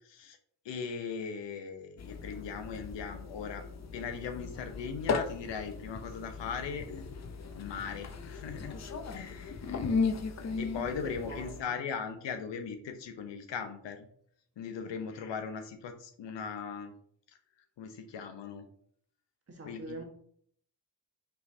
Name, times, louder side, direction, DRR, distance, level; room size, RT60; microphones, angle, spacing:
voice 1, 0.1-0.4 0.6-3.6 3.9-7.2 7.5-8.8 9.1-9.6 10.6-14.1 14.6-16.9 17.8-18.7 19.7-20.0, left 6 dB, 75° left, 0.8 m, -39 dB
sound 1, 2.0-11.6, left 4 dB, 40° left, 0.6 m, -37 dB
voice 2, 11.0-11.5 19.5-20.0, right 2 dB, 35° right, 1.3 m, -43 dB
5.5 x 3.2 x 2.7 m
cardioid pair, 55°, 44 cm